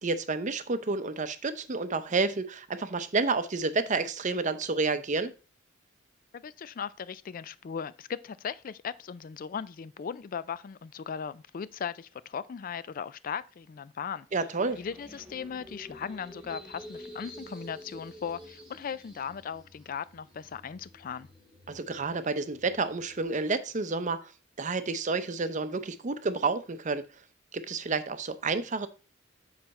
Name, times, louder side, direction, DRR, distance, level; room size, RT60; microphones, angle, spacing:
voice 1, 0.0-5.3 14.3-14.8 21.7-24.3 24.6-27.1 27.5-28.9, right 3 dB, 40° right, 0.6 m, -30 dB
voice 2, 6.3-14.3 14.8-21.3, left 7 dB, 45° left, 0.3 m, -38 dB
sound 1, 14.6-23.2, equal, 5° right, 1.5 m, -49 dB
7.7 x 5.7 x 4.2 m
head